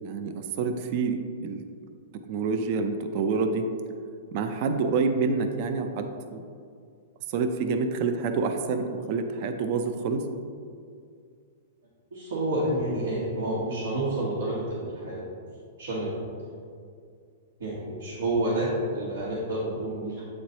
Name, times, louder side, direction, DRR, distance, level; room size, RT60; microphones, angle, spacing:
voice 1, 0.0-1.6 2.3-3.7 4.3-6.4 7.3-10.3, right 4 dB, 35° right, 7 dB, 0.4 m, -27 dB
voice 2, 12.1-15.3 15.8-16.3 17.6-20.2, right 1 dB, 85° right, -7 dB, 1.5 m, -29 dB
8.0 x 3.2 x 4.0 m, 2.2 s
supercardioid pair, 170°, 0 cm